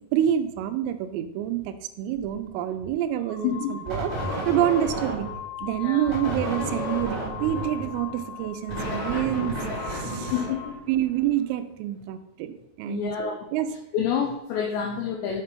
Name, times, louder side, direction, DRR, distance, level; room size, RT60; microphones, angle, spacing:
voice 1, 0.0-4.1 4.5-5.3 5.6-10.3 10.9-13.7, right 11 dB, 90° right, 9 dB, 3.3 m, -27 dB
sound 1, 2.1-2.3 3.1-10.8, left 9 dB, 50° left, 2.9 m, -40 dB
voice 2, 3.4-3.7 5.8-6.0 10.1-10.8 12.9-13.5 13.9-15.4, left 8 dB, 85° left, 3 dB, 2.5 m, -28 dB
sound 2, 3.9-5.5 6.1-11.2, right 1 dB, 25° right, 1.3 m, -32 dB
8.0 x 4.4 x 5.2 m, 0.90 s
omnidirectional pair, 5.8 m